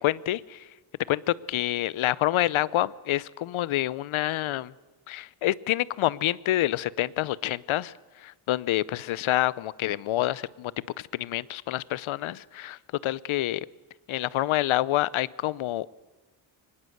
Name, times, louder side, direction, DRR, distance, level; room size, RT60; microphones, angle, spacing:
voice 1, 0.0-0.6 1.1-4.7 5.1-7.9 8.2-10.7 11.0-13.7 14.1-15.9, left 14 dB, 75° left, 21 dB, 0.8 m, -27 dB
24.5 x 19.5 x 7.9 m, 1.2 s
cardioid pair, 135°, 49 cm